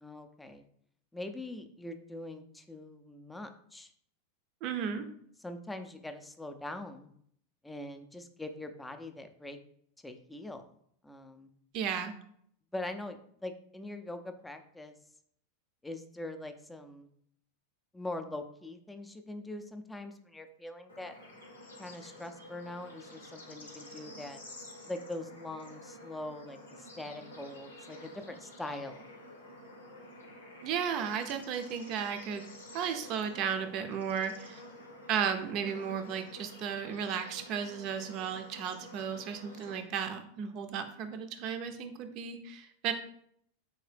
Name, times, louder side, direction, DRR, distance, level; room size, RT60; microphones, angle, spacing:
voice 1, 0.0-0.6 1.1-3.9 5.4-7.1 7.6-9.6 10.0-10.7 11.0-11.5 12.7-14.9 15.8-17.1 17.9-21.2 21.8-24.4 24.8-29.1, left 2 dB, 10° left, 6 dB, 0.4 m, -42 dB
voice 2, 4.6-5.1 11.7-12.1 30.6-32.5 32.7-34.6 35.1-42.9, right 7 dB, 50° right, 8 dB, 0.5 m, -34 dB
Bird / Insect / Frog, 20.9-39.8, left 1 dB, 90° left, 0.8 m, -50 dB
3.8 x 2.8 x 3.3 m, 0.67 s
hypercardioid pair, 95°, 0 cm